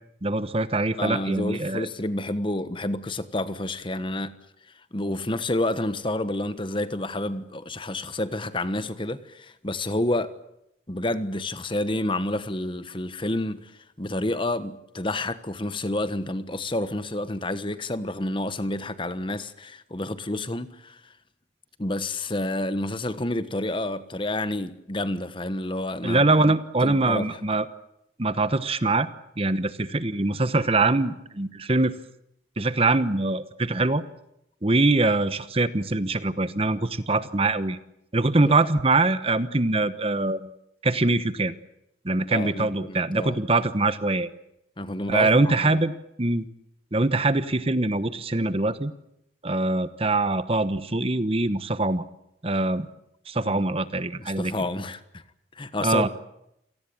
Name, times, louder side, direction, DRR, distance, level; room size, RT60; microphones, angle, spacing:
voice 1, 0.2-1.9 26.0-27.7 28.2-29.1 29.4-31.9 32.6-34.0 34.6-37.8 38.1-40.5 40.8-41.5 42.0-44.3 45.1-45.9 46.2-46.4 46.9-48.9 49.4-52.0 52.4-52.9 53.3-54.5 55.8-56.1, right 2 dB, 35° right, 1.1 m, -23 dB
voice 2, 1.0-4.3 4.9-10.3 10.9-13.7 14.0-21.0 21.8-26.5 26.8-27.4 38.4-38.5 42.3-43.4 44.8-45.8 53.5-53.6 54.2-55.2 55.6-56.1, left 1 dB, 30° left, 1.3 m, -29 dB
28.0 x 18.5 x 8.7 m
head